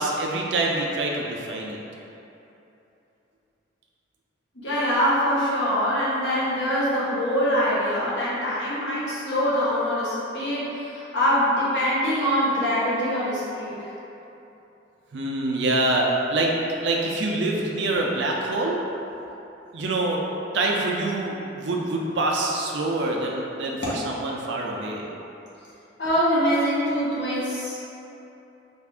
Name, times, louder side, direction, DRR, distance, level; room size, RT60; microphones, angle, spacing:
voice 1, 0.0-1.8 15.1-16.5 16.8-18.8 19.7-20.2 20.5-25.1, right 2 dB, 80° right, -1 dB, 0.5 m, -25 dB
voice 2, 4.5-13.8 26.0-27.9, equal, 85° left, -8 dB, 1.0 m, -24 dB
3.5 x 2.4 x 3.5 m, 2.9 s
head